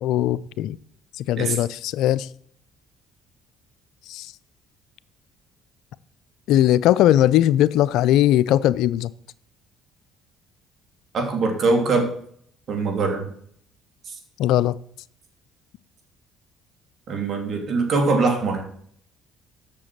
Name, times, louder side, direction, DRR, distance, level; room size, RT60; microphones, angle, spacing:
voice 1, 0.0-0.8 1.2-2.3 4.1-4.3 6.5-9.1 14.4-14.7, left 12 dB, 75° left, 0.4 m, -19 dB
voice 2, 11.1-12.1 12.7-13.3 17.1-18.7, right 3 dB, 55° right, 2.7 m, -22 dB
7.7 x 6.6 x 7.4 m
supercardioid pair, 75°, 0 cm